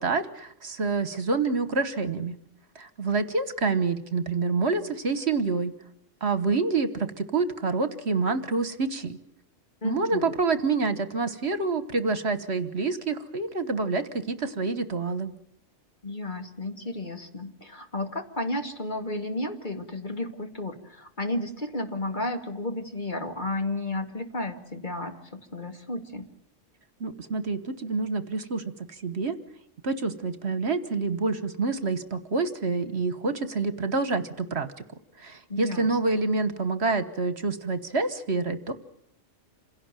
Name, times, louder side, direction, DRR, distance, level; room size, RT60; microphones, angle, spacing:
voice 1, 0.0-2.4 2.7-5.7 6.2-9.2 9.8-15.3 27.0-28.6 28.9-29.4 29.8-34.7 35.2-38.7, right 3 dB, 60° right, 12 dB, 1.5 m, -27 dB
voice 2, 9.8-10.3 16.0-26.3 35.5-36.0, left 2 dB, 40° left, 5 dB, 2.4 m, -33 dB
27.5 x 17.0 x 9.1 m, 0.71 s
omnidirectional pair, 1.3 m